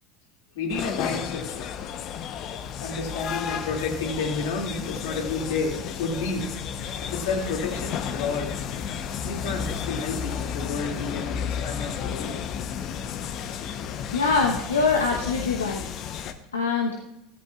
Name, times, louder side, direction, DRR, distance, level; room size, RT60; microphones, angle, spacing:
voice 1, 0.6-1.7 2.8-6.5 7.0-8.5 9.2-12.6, left 4 dB, 70° left, 1 dB, 2.4 m, -31 dB
sound 1, 0.7-16.3, left 8 dB, 50° left, 0.9 m, -32 dB
voice 2, 14.1-15.8 16.5-17.0, left 4 dB, 85° left, 1 dB, 1.0 m, -23 dB
14.5 x 13.5 x 2.4 m, 0.89 s
hypercardioid pair, 75°, 0 cm